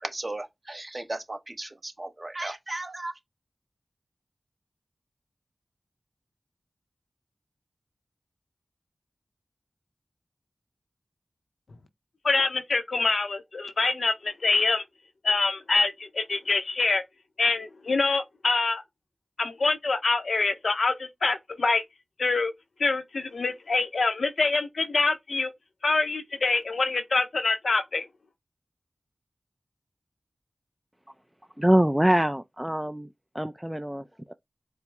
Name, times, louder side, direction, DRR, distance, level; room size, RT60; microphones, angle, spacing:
voice 1, 0.0-3.1, right 2 dB, 40° right, 1.0 m, -36 dB
voice 2, 12.2-14.8 15.2-17.0 17.4-18.8 19.4-21.8 22.2-22.5 22.8-25.5 25.8-28.0, left 3 dB, 80° left, 0.6 m, -25 dB
voice 3, 31.6-33.1 33.3-34.3, right 1 dB, 10° right, 0.3 m, -24 dB
4.5 x 2.0 x 3.4 m
cardioid pair, 40°, 0 cm